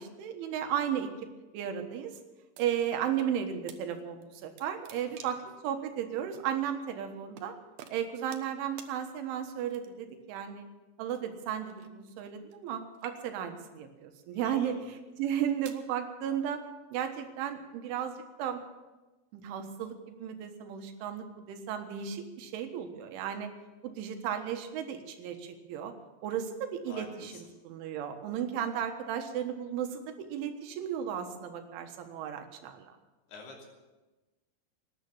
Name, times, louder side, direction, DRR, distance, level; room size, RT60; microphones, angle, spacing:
voice 1, 0.0-2.1 2.6-5.4 5.6-7.6 7.9-10.7 11.0-14.8 15.2-16.6 16.9-18.6 19.3-23.5 23.8-25.9 26.2-27.3 27.7-32.9, right 9 dB, 85° right, 6 dB, 3.9 m, -34 dB
sound 1, 2.5-3.3 3.7-3.8 4.2-5.5 6.3-6.5 7.4-7.5 7.8-8.5 8.8-8.9 9.7-10.1 11.1-12.7 12.9-13.5 14.2-14.5 15.2-15.9, right 9 dB, 70° right, 2.6 m, -50 dB
voice 2, 14.3-14.8 26.9-27.4 33.3-33.7, left 2 dB, 60° left, 0 dB, 4.7 m, -47 dB
18.5 x 10.5 x 7.1 m, 1.2 s
omnidirectional pair, 5.4 m